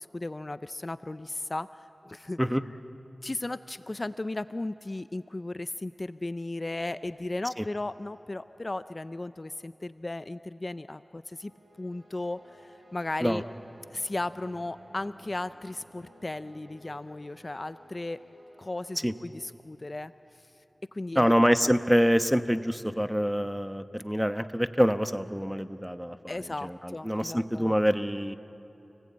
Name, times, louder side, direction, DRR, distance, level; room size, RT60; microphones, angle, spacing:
voice 1, 0.0-2.4 2.7-2.8 3.2-11.5 11.8-13.4 13.9-18.2 18.6-20.1 20.9-21.3 21.6-21.7 26.3-27.7, left 2 dB, 45° left, 13 dB, 0.5 m, -36 dB
sound 1, 11.3-19.8, right 1 dB, 60° right, 4.6 m, -55 dB
voice 2, 21.1-28.4, equal, 5° right, 9 dB, 1.0 m, -26 dB
30.0 x 19.0 x 8.7 m, 3.0 s
cardioid pair, 40°, 0 cm